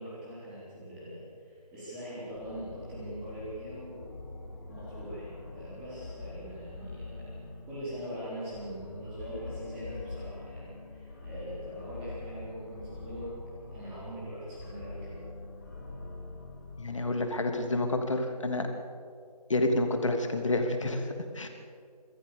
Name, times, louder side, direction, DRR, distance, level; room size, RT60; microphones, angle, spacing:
voice 1, 0.0-4.1 4.7-13.3 13.7-15.2, equal, 5° right, -9 dB, 3.8 m, -42 dB
sound 1, 2.3-18.0, left 2 dB, 30° left, 2.8 m, -44 dB
voice 2, 16.8-18.7 19.5-21.5, left 2 dB, 50° left, 5 dB, 2.9 m, -29 dB
27.0 x 14.5 x 7.0 m, 2.3 s
figure-of-eight pair, 175°, 21 cm